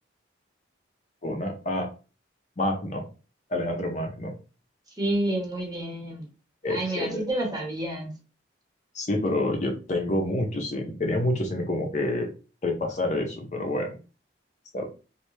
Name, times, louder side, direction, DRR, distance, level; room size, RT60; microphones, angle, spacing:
voice 1, 1.2-1.9 2.6-3.1 3.5-4.3 6.6-7.2 8.9-12.3 12.6-14.0 14.7-14.9, left 1 dB, 40° left, 0.6 m, -28 dB
voice 2, 5.0-6.2 6.7-8.1, right 1 dB, 20° right, 0.9 m, -29 dB
3.2 x 2.5 x 3.2 m
head